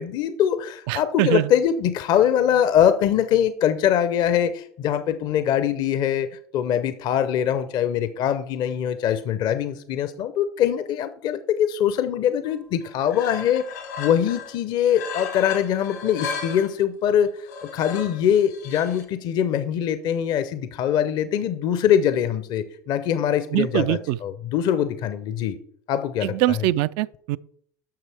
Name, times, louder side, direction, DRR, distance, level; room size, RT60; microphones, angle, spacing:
voice 1, 0.0-25.6 25.9-26.6, left 9 dB, 50° left, 0.7 m, -23 dB
voice 2, 0.9-1.5 23.5-24.2 26.2-27.4, right 16 dB, 60° right, 0.3 m, -23 dB
sound 1, 12.4-12.5 12.8-14.6 14.9-16.7 17.4-19.0, left 5 dB, 85° left, 2.6 m, -35 dB
10.5 x 6.7 x 3.4 m
hypercardioid pair, 75°, 9 cm